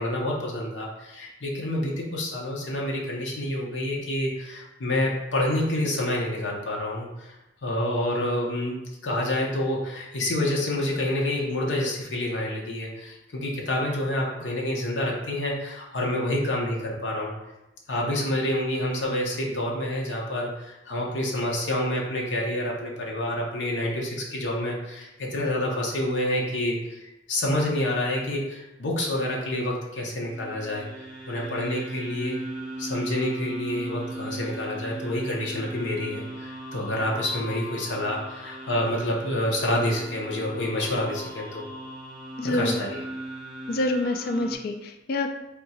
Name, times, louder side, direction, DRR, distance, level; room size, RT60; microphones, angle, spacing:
voice 1, 0.0-7.4 7.6-17.3 17.9-30.9 31.3-32.4 32.8-41.6 42.4-43.0, left 1 dB, 80° left, -2 dB, 0.9 m, -28 dB
sound 1, 30.2-44.5, right 1 dB, 5° right, 0.8 m, -38 dB
voice 2, 42.4-42.8 43.7-45.3, left 2 dB, 55° left, 6 dB, 0.4 m, -26 dB
3.5 x 2.8 x 4.2 m, 0.94 s
head